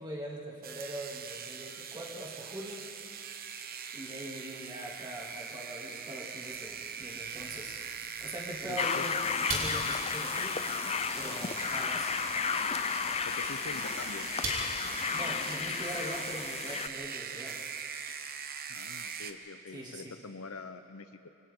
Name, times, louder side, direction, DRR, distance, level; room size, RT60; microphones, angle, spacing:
voice 1, 0.0-2.9 3.9-7.8 8.2-9.2 9.5-10.6 11.1-12.1 15.1-17.7 19.7-20.2, right 1 dB, 20° right, -3 dB, 2.9 m, -42 dB
sound 1, 0.6-19.3, right 7 dB, 45° right, 1.0 m, -41 dB
sound 2, 6.5-17.0, right 2 dB, 60° right, 5.2 m, -44 dB
voice 2, 8.6-9.1 13.2-14.3 18.7-21.3, left 3 dB, 75° left, 8 dB, 0.9 m, -45 dB
sound 3, 8.8-16.9, left 6 dB, 30° left, 0.4 m, -33 dB
28.5 x 26.0 x 3.9 m, 3.0 s
head